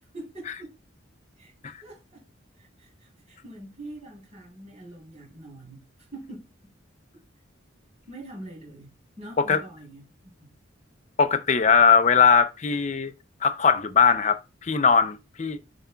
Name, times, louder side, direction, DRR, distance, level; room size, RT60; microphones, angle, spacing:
voice 1, 0.1-0.7 1.4-2.2 2.6-5.8 6.1-6.7 8.1-10.5, right 1 dB, 35° right, 3.2 m, -44 dB
voice 2, 11.2-13.1 13.4-15.6, left 6 dB, 35° left, 0.5 m, -20 dB
7.5 x 5.6 x 2.3 m
head